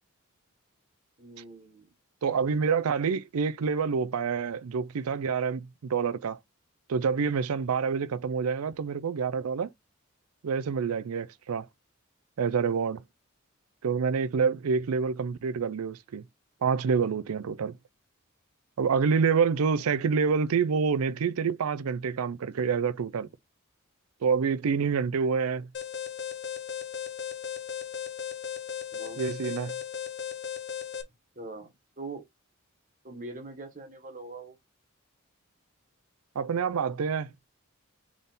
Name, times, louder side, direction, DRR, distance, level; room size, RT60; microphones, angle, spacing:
voice 1, 1.2-1.9 28.9-29.2 31.3-31.7 32.0-32.2 33.0-34.5, right 3 dB, 35° right, 1.2 m, -42 dB
voice 2, 2.2-6.4 6.9-9.7 10.4-11.7 12.4-13.0 13.8-16.2 16.6-17.8 18.8-23.3 24.2-25.7 29.2-29.8 36.4-37.3, right 5 dB, 85° right, 0.4 m, -27 dB
Alarm, 25.7-31.0, left 8 dB, 50° left, 0.6 m, -36 dB
3.8 x 3.5 x 4.0 m
head